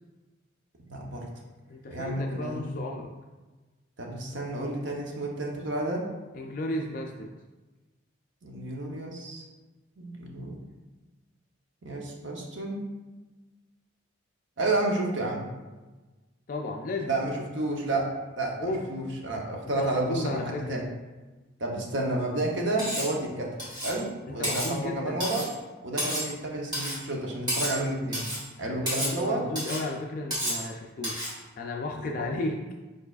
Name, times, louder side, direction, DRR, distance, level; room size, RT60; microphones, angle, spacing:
voice 1, 0.9-1.3 1.9-2.7 4.0-6.1 8.4-9.4 10.0-10.6 11.8-12.8 14.6-15.5 17.1-20.9 21.6-25.5 25.8-28.2 28.6-29.5 32.0-32.3, right 2 dB, 60° right, -1 dB, 0.8 m, -31 dB
voice 2, 1.7-3.1 6.3-7.3 16.5-17.1 18.6-18.8 19.8-20.8 24.3-25.2 28.7-28.9 29.2-32.6, left 2 dB, 40° left, 1 dB, 0.3 m, -34 dB
Cutlery silverware, 22.8-23.1 23.6-24.0 24.4-24.7 25.2-25.5 26.0-26.3 26.7-27.0 27.5-27.8 28.1-28.4 28.9-29.2 29.6-29.8 30.3-30.6 31.0-31.3, equal, 20° right, 1.4 m, -31 dB
4.8 x 4.6 x 2.4 m, 1.2 s
head